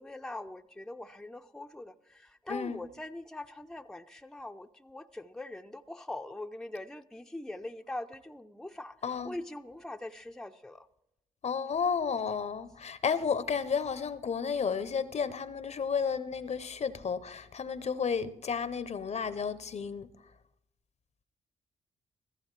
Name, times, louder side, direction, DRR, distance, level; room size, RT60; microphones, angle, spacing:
voice 1, 0.0-9.0 9.2-10.9, left 2 dB, 5° left, 0.6 m, -42 dB
voice 2, 2.5-2.8 9.0-9.3 11.4-20.1, left 6 dB, 45° left, 0.8 m, -32 dB
14.5 x 14.5 x 3.3 m
hypercardioid pair, 45°, 16 cm